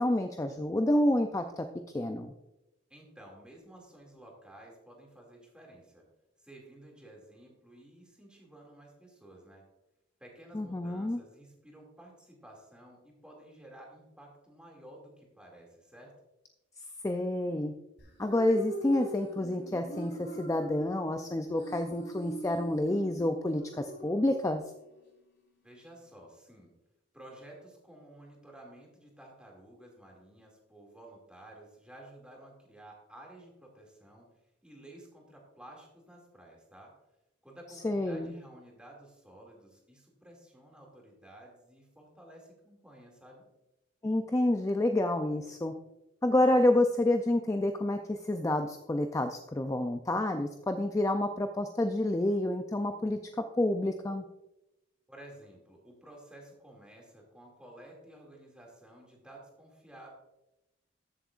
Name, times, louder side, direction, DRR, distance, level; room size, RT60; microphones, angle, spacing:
voice 1, 0.0-1.7 1.9-2.3 10.5-11.2 17.0-17.7 18.2-24.6 37.8-38.3 44.0-45.7 46.2-53.2 53.6-54.2, left 1 dB, 15° left, 6 dB, 0.4 m, -28 dB
voice 2, 2.9-6.0 6.4-9.6 10.2-16.1 25.6-26.7 27.1-34.3 34.6-36.9 37.4-43.5 55.1-60.1, right 1 dB, 5° right, -1 dB, 2.3 m, -53 dB
sound 1, 18.0-25.0, right 1 dB, 60° left, 2.9 m, -42 dB
14.0 x 7.4 x 2.5 m, 0.93 s
head